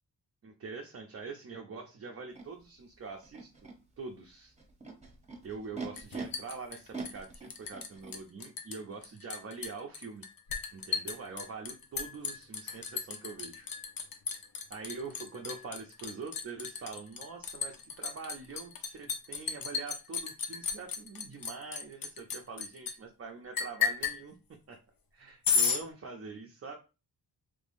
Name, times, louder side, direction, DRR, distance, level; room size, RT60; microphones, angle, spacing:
voice 1, 0.4-3.5 4.0-4.5 5.4-10.2 10.7-13.7 14.7-24.8 25.1-26.7, right 4 dB, 35° right, 2 dB, 0.5 m, -44 dB
Animal, 2.3-2.4 3.2-3.7 4.6-6.2 6.9-8.1, right 4 dB, 15° right, 1.0 m, -42 dB
Liquid, 6.0-7.9 8.1-8.8 9.0-22.9 23.6-24.2 25.4-25.8, left 5 dB, 55° left, 0.7 m, -34 dB
3.3 x 3.3 x 2.6 m, 0.30 s
cardioid pair, 70°, 41 cm